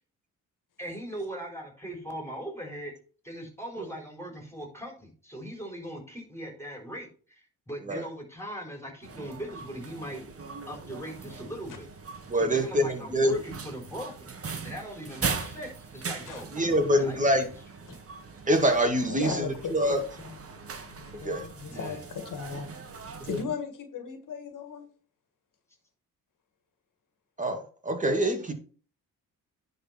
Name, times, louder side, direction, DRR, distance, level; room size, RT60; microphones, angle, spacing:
voice 1, 0.8-2.9 3.2-10.2 10.7-11.9 12.3-14.3 14.6-17.5 21.7-22.0, right 1 dB, 10° left, 3 dB, 4.5 m, -40 dB
sound 1, 9.0-23.4, right 5 dB, 40° right, 1.9 m, -40 dB
voice 2, 12.3-13.4 16.5-17.4 18.5-20.0 21.2-21.4 23.2-23.4 27.4-28.5, equal, 20° right, 5 dB, 2.4 m, -25 dB
voice 3, 19.1-20.4 20.9-24.9, left 6 dB, 65° left, 7 dB, 2.2 m, -37 dB
10.0 x 4.6 x 6.0 m, 0.41 s
cardioid pair, 95°, 34 cm